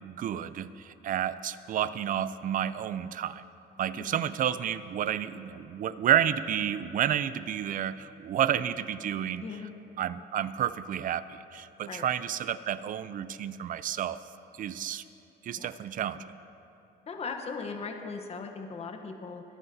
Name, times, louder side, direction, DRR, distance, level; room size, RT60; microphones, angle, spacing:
voice 1, 0.0-3.4 3.8-9.4 10.0-14.2 14.6-15.0 15.4-16.3, right 10 dB, 50° right, 15 dB, 0.4 m, -30 dB
voice 2, 4.0-4.3 9.4-9.7 11.9-12.1 15.6-15.8 17.1-19.4, left 4 dB, 35° left, 4 dB, 0.9 m, -38 dB
27.0 x 9.6 x 2.7 m, 2.8 s
cardioid pair, 125°, 18 cm